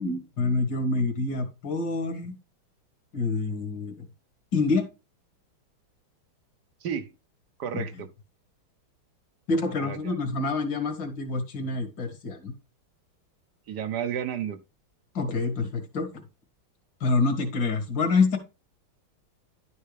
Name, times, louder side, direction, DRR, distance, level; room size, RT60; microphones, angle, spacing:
voice 1, 0.0-2.3 3.1-3.9 4.5-4.9 7.7-7.8 9.5-12.5 15.1-16.1 17.0-18.4, left 3 dB, 65° left, 2.5 m, -27 dB
voice 2, 6.8-7.1 7.6-8.1 9.8-10.2 13.7-14.6, right 8 dB, 60° right, 1.4 m, -32 dB
11.0 x 5.6 x 3.3 m
omnidirectional pair, 2.2 m